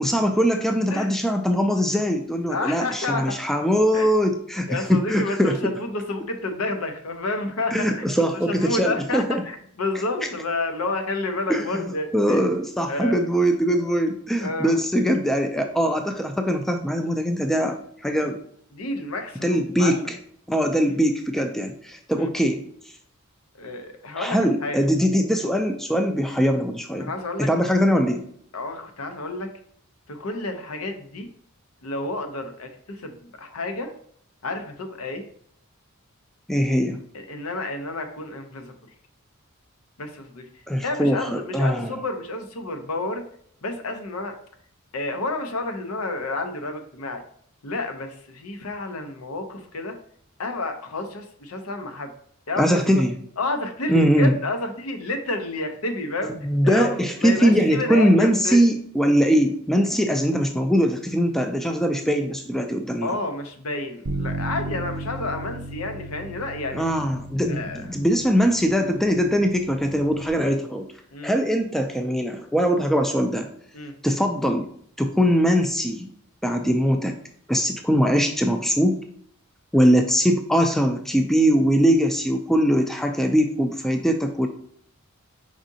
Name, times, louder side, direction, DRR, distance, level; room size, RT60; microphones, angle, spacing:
voice 1, 0.0-5.7 7.7-9.4 11.5-11.8 12.1-17.8 18.0-18.4 19.4-20.0 20.5-22.6 24.2-27.1 27.4-28.2 36.5-37.0 40.7-41.9 52.6-53.2 53.9-54.3 56.4-63.1 66.7-70.9 71.2-73.5 74.0-74.7 75.0-76.1 76.4-77.2 77.5-79.0 79.7-84.5, equal, ahead, 5 dB, 0.3 m, -21 dB
voice 2, 2.5-3.4 3.9-4.1 4.7-8.1 8.3-12.4 12.9-13.1 14.4-14.8 18.7-20.1 20.8-20.9 22.2-22.3 23.6-24.8 27.0-27.5 28.5-29.5 30.1-31.3 31.8-33.9 34.4-35.3 37.1-38.7 40.0-40.5 40.8-43.2 43.6-44.3 44.9-47.2 47.6-50.0 50.4-52.1 52.5-53.0 53.4-56.4 56.6-58.6 63.0-66.9 67.5-67.8 71.1-71.3 73.7-73.9 79.8-79.9, left 2 dB, 80° left, 6 dB, 0.7 m, -30 dB
Bass guitar, 64.1-70.3, right 1 dB, 65° right, 0.4 m, -35 dB
5.0 x 3.6 x 2.7 m, 0.62 s
head